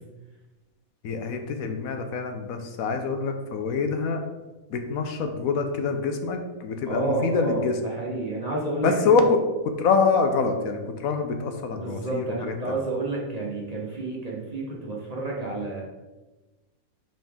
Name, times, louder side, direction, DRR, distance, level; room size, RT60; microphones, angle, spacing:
voice 1, 1.0-4.2 4.7-7.8 8.8-9.4 9.8-12.8, left 4 dB, 75° left, 6 dB, 1.1 m, -25 dB
voice 2, 6.9-9.2 11.7-15.8, right 2 dB, 30° right, -3 dB, 1.1 m, -30 dB
5.4 x 5.2 x 3.6 m, 1.1 s
omnidirectional pair, 1.5 m